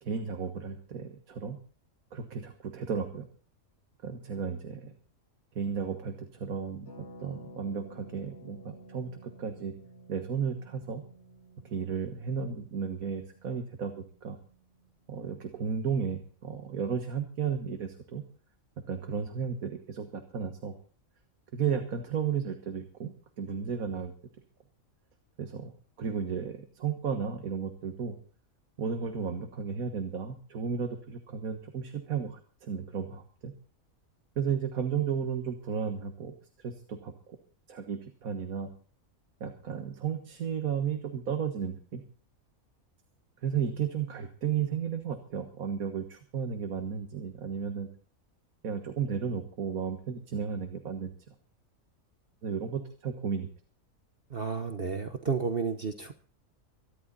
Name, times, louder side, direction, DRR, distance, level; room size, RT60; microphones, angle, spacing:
voice 1, 0.0-1.6 2.1-3.3 4.0-4.9 5.6-9.7 10.1-11.0 11.6-14.4 15.1-18.2 18.8-20.7 21.5-24.1 25.4-25.7 26.0-28.2 28.8-33.5 34.4-37.1 37.7-38.7 39.4-42.0 43.4-47.9 48.6-51.3 52.4-53.5, right 7 dB, 85° right, 6 dB, 1.9 m, -34 dB
Harp, 6.8-16.5 16.7-16.8 17.0-17.3, right 1 dB, 55° left, 8.3 m, -53 dB
voice 2, 54.3-56.1, right 5 dB, 45° right, 7 dB, 1.3 m, -31 dB
23.5 x 11.5 x 4.1 m, 0.42 s
omnidirectional pair, 1.5 m